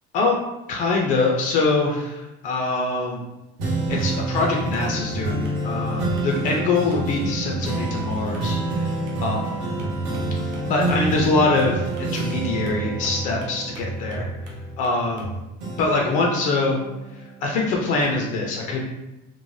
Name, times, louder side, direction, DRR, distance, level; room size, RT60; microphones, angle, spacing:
voice 1, 0.7-3.2 3.9-8.6 9.2-9.4 10.7-14.3 14.8-15.3 15.8-16.8 17.4-18.8, left 3 dB, 40° left, -1 dB, 0.4 m, -23 dB
sound 1, 3.6-15.2 15.6-17.5 18.0-18.1, right 2 dB, 65° right, 1.0 m, -28 dB
sound 2, 3.9-15.4, right 2 dB, 40° right, 0.5 m, -34 dB
3.0 x 2.1 x 2.6 m, 1.0 s
cardioid pair, 175°, 21 cm